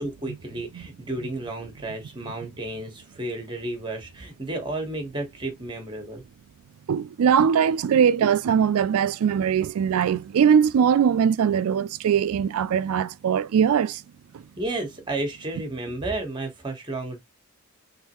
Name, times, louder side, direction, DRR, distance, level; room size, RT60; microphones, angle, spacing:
voice 1, 0.0-6.2 14.6-17.2, right 2 dB, 20° right, 1.2 m, -32 dB
voice 2, 6.9-14.0 14.3-14.4, right 7 dB, 75° right, 0.3 m, -21 dB
3.6 x 3.1 x 3.0 m
head